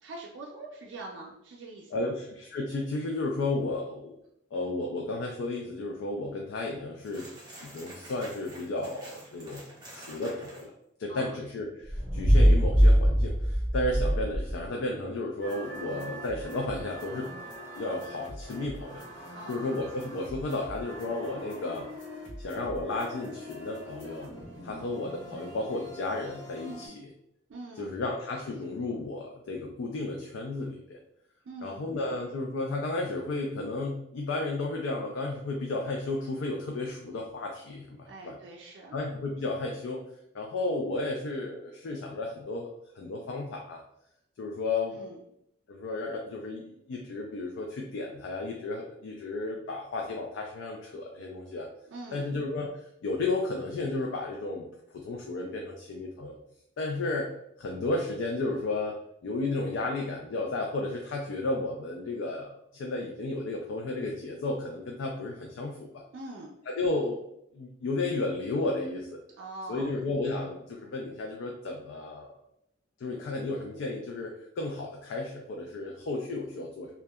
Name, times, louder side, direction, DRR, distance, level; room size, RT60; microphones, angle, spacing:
voice 1, 0.0-2.1 11.1-11.4 19.3-19.6 26.7-27.0 27.5-28.0 31.5-31.9 38.1-39.0 44.9-45.2 51.9-52.3 66.1-66.5 69.4-69.9, right 2 dB, 75° right, -1 dB, 0.4 m, -43 dB
voice 2, 1.9-4.2 4.5-7.3 7.6-10.7 11.0-17.3 17.8-21.9 22.4-24.3 24.6-27.1 27.7-31.0 31.6-38.4 38.9-40.0 40.3-42.7 43.0-43.8 44.4-45.0 45.7-51.7 52.1-52.7 53.0-54.7 54.9-56.4 56.8-57.3 57.6-66.0 66.7-67.2 67.5-69.2 69.7-72.3 73.0-76.9, left 2 dB, 85° left, 0 dB, 0.3 m, -33 dB
sound 1, 7.0-10.7, right 1 dB, 20° right, 0.8 m, -48 dB
sound 2, 11.8-14.7, equal, 5° left, 0.9 m, -22 dB
sound 3, 15.4-26.9, equal, 70° left, 1.2 m, -43 dB
2.7 x 2.2 x 2.2 m, 0.77 s
head